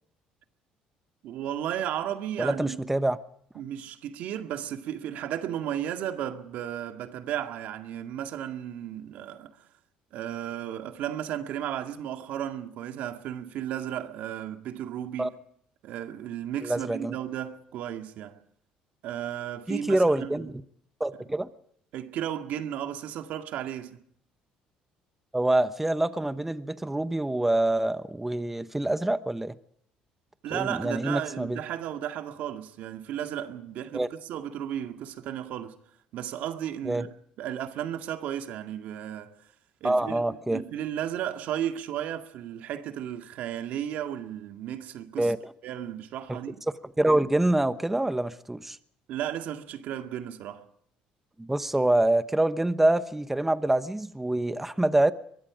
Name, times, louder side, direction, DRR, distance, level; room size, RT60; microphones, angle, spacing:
voice 1, 1.2-2.8 3.6-9.6 10.1-15.3 15.8-18.4 19.0-20.5 21.9-24.0 30.4-35.8 36.1-37.1 37.4-39.3 39.8-45.3 45.6-46.6 49.1-50.6, right 10 dB, 70° right, 2.0 m, -34 dB
voice 2, 2.4-3.2 15.2-15.3 16.6-17.1 19.7-20.5 21.0-21.5 25.3-29.5 30.5-31.6 33.9-34.1 36.8-37.1 39.8-40.6 45.2-45.4 46.3-46.4 47.0-48.8 51.4-55.1, right 1 dB, 10° right, 1.1 m, -25 dB
23.0 x 22.0 x 5.1 m
cardioid pair, 110°, 3 cm